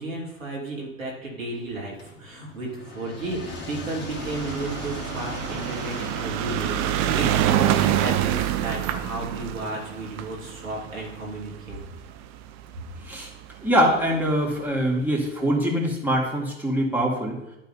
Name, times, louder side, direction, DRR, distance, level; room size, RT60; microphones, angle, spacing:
voice 1, 0.0-11.8, right 2 dB, 85° right, -2 dB, 2.7 m, -33 dB
sound 1, 2.0-7.9, left 2 dB, 30° left, 2.2 m, -39 dB
sound 2, 4.1-12.6 13.4-13.5 13.7-13.8 14.1-14.2, right 11 dB, 45° right, 0.7 m, -26 dB
voice 2, 13.6-17.4, equal, 5° right, -3 dB, 2.7 m, -23 dB
12.0 x 4.0 x 4.3 m, 0.90 s
hypercardioid pair, 80°, 38 cm